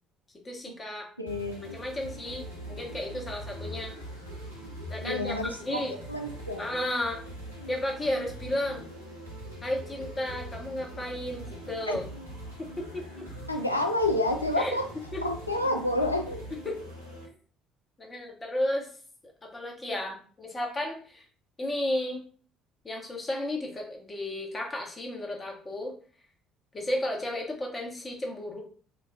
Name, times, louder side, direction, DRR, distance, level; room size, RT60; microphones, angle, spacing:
voice 1, 0.4-1.1 1.7-3.9 4.9-5.9 6.6-7.2 7.7-8.8 9.6-12.1 12.6-13.3 14.6-14.7 15.1-15.2 16.6-16.8 18.0-18.9 19.4-21.2 21.6-22.2 22.8-25.9 26.7-28.6, left 1 dB, 25° left, 1 dB, 0.9 m, -33 dB
voice 2, 1.2-1.8 5.0-5.8 6.1-6.6 11.9-12.0 13.5-14.9 15.2-16.4, left 1 dB, 90° left, 4 dB, 0.3 m, -29 dB
sound 1, 1.3-17.3, right 1 dB, 85° right, 0.6 m, -42 dB
4.0 x 2.3 x 2.2 m, 0.43 s
figure-of-eight pair, 55°, 0 cm